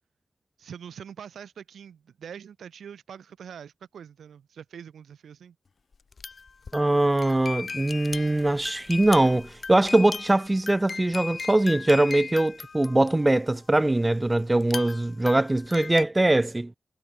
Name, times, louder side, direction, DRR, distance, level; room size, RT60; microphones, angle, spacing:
voice 1, 0.6-5.6, right 8 dB, 90° right, 2.2 m, -44 dB
sound 1, 5.9-13.5 14.6-16.0, left 4 dB, 60° left, 2.6 m, -38 dB
voice 2, 6.7-16.7, right 2 dB, 25° right, 0.4 m, -22 dB
cardioid pair, 50°, 0 cm